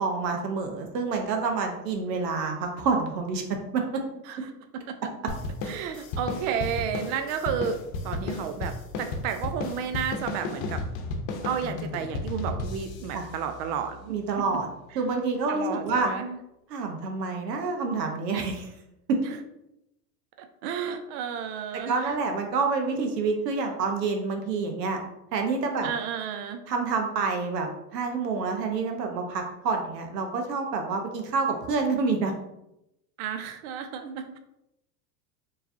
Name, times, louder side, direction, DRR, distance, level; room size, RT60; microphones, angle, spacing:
voice 1, 0.0-4.0 13.1-13.3 14.1-14.7 14.9-16.1 16.7-18.7 19.1-19.2 21.7-25.0 25.3-25.9 26.7-32.3, right 4 dB, 90° right, 3 dB, 1.1 m, -28 dB
sound 1, 5.3-14.1, left 3 dB, 60° left, 0.9 m, -34 dB
voice 2, 5.6-10.8 11.4-14.1 14.9-15.0 15.5-16.4 20.4-22.1 25.8-26.6 33.2-34.4, right 7 dB, 50° right, 7 dB, 0.5 m, -32 dB
4.7 x 3.2 x 2.7 m, 0.85 s
hypercardioid pair, 115°, 48 cm